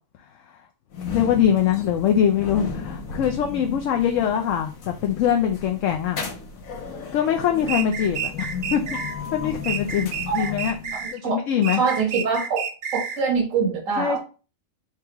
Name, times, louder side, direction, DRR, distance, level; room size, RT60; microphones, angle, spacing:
sound 1, 0.9-11.1, left 5 dB, 90° left, 1.3 m, -35 dB
voice 1, 1.1-6.3 7.1-8.8 9.3-10.8 11.1-11.8 14.0-14.2, left 9 dB, 75° left, 0.9 m, -23 dB
sound 2, 7.7-9.1 9.6-11.2 11.6-13.2, right 7 dB, 60° right, 0.5 m, -30 dB
voice 2, 10.9-11.4 11.8-12.6 12.9-14.2, right 5 dB, 80° right, 1.6 m, -24 dB
4.7 x 3.4 x 2.9 m
omnidirectional pair, 1.4 m